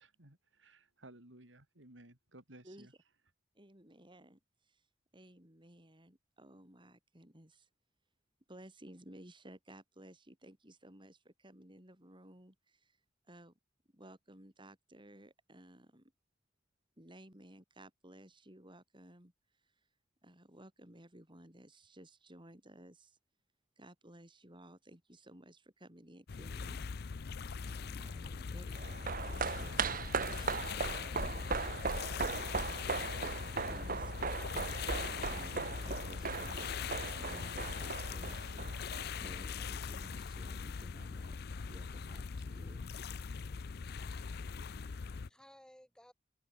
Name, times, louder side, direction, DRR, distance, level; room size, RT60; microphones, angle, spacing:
voice 1, 0.0-2.9, right 1 dB, 80° right, 5.0 m, -57 dB
voice 2, 3.5-4.8 5.1-7.7 8.5-13.0 13.3-13.5 13.9-16.1 17.0-19.3 20.2-23.2 23.8-26.9 27.3-27.4 27.6-31.6 33.6-42.9, right 1 dB, 25° right, 6.5 m, -56 dB
sound 1, 26.3-45.3, left 5 dB, 55° left, 0.5 m, -41 dB
sound 2, 28.7-39.3 39.6-39.7, right 4 dB, 50° right, 1.7 m, -38 dB
voice 3, 44.5-46.1, equal, 5° left, 7.4 m, -61 dB
open air
head